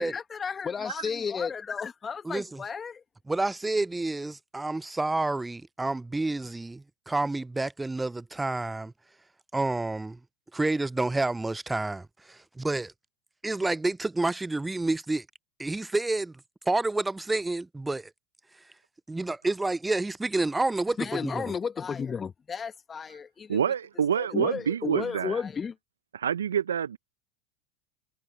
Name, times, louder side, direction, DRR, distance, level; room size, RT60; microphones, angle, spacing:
voice 1, 0.0-3.0 21.0-23.6 24.1-25.8, left 6 dB, 25° left, 1.3 m, -33 dB
voice 2, 2.3-2.6 3.3-8.9 9.5-10.2 10.5-12.9 13.4-15.3 15.6-16.3 16.7-18.1 19.1-21.4, right 2 dB, 10° right, 0.4 m, -29 dB
voice 3, 23.5-25.4 26.1-27.0, right 8 dB, 80° right, 0.9 m, -27 dB
figure-of-eight pair, 80°, 0 cm